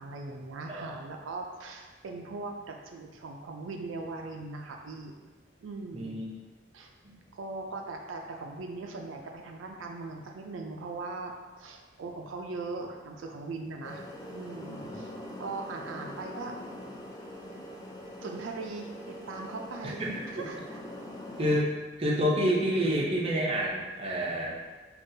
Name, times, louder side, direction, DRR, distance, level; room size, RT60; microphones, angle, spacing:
voice 1, 0.0-5.2 5.6-6.2 6.7-6.9 7.4-11.3 11.6-15.1 15.4-16.7 18.2-20.8 22.1-22.2, right 3 dB, 85° right, 2 dB, 0.4 m, -40 dB
voice 2, 5.9-6.3 7.0-7.1 14.8-15.0 19.8-20.5 21.4-21.7 22.0-24.5, equal, 30° right, -3 dB, 0.5 m, -28 dB
sound 1, 13.8-21.6, left 1 dB, 20° left, 0.4 m, -43 dB
5.2 x 2.4 x 2.7 m, 1.3 s
head